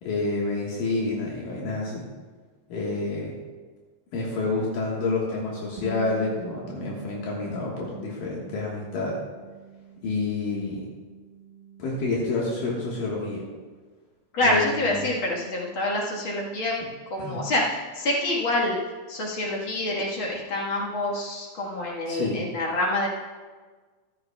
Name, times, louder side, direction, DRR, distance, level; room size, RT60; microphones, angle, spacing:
voice 1, 0.0-2.1 2.7-3.4 4.1-9.2 10.0-10.8 11.8-13.4 14.4-15.1 17.2-17.4 22.1-22.5, left 3 dB, 80° left, -4 dB, 3.1 m, -29 dB
Bass guitar, 5.8-12.0, right 6 dB, 80° right, 0.8 m, -44 dB
voice 2, 14.3-16.8 17.1-18.8 19.1-23.1, left 1 dB, 50° left, -3 dB, 1.8 m, -26 dB
14.5 x 12.5 x 2.3 m, 1.4 s
omnidirectional pair, 3.9 m